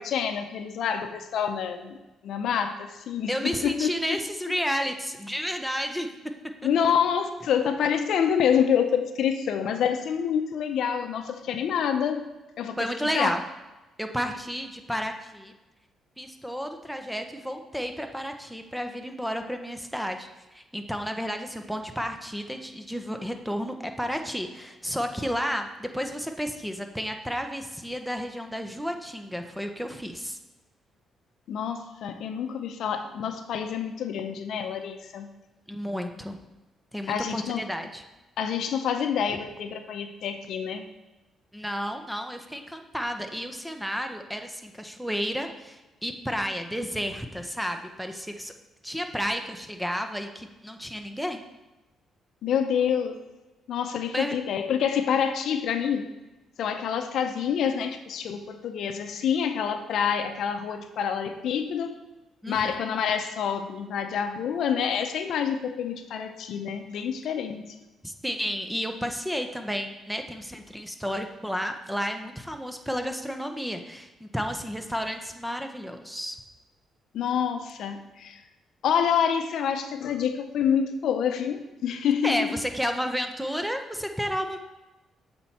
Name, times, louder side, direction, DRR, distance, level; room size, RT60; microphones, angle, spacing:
voice 1, 0.0-2.0 2.2-4.2 6.6-12.2 12.6-13.3 31.5-35.3 37.1-37.6 38.4-40.9 52.4-53.2 53.7-56.1 56.6-62.0 62.5-67.7 77.1-78.4 78.8-82.5, left 8 dB, 75° left, 8 dB, 0.6 m, -27 dB
voice 2, 3.3-6.1 12.8-13.4 14.0-15.5 16.2-30.4 35.7-36.4 36.9-38.0 41.5-48.5 48.8-51.4 54.1-54.3 62.4-62.8 68.0-76.4 82.2-84.6, equal, ahead, 6 dB, 0.6 m, -32 dB
7.5 x 4.4 x 4.2 m, 1.1 s
cardioid pair, 90°, 0 cm